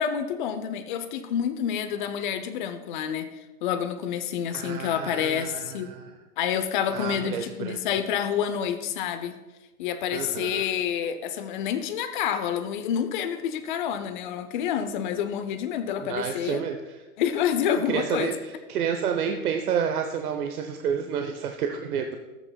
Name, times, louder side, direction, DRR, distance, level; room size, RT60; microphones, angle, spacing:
voice 1, 0.0-3.3 3.6-5.9 6.4-9.3 9.8-16.6 17.2-18.3, left 9 dB, 35° left, 9 dB, 0.6 m, -28 dB
voice 2, 4.5-6.1 6.9-7.8 10.1-10.7 16.0-16.9 17.7-22.2, right 7 dB, 75° right, 5 dB, 0.9 m, -30 dB
13.5 x 8.2 x 2.3 m, 1.1 s
hypercardioid pair, 135°, 45 cm